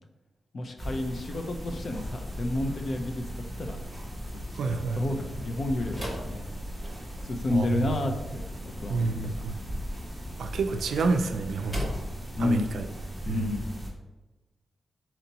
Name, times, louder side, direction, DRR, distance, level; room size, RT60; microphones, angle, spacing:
voice 1, 0.5-3.8 4.7-6.4 7.2-9.5 12.4-12.7 13.2-13.7, left 2 dB, 40° left, 4 dB, 0.5 m, -31 dB
sound 1, 0.8-13.9, equal, ahead, 0.9 m, -38 dB
voice 2, 4.6-5.0 7.5-7.9 8.9-9.5 10.4-11.9 12.4-12.8 13.3-13.6, right 4 dB, 75° right, 7 dB, 0.4 m, -29 dB
sound 2, 5.9-7.3 10.6-12.3, equal, 15° left, 1.3 m, -37 dB
4.4 x 2.8 x 4.0 m, 1.1 s
wide cardioid pair, 160°, 0 cm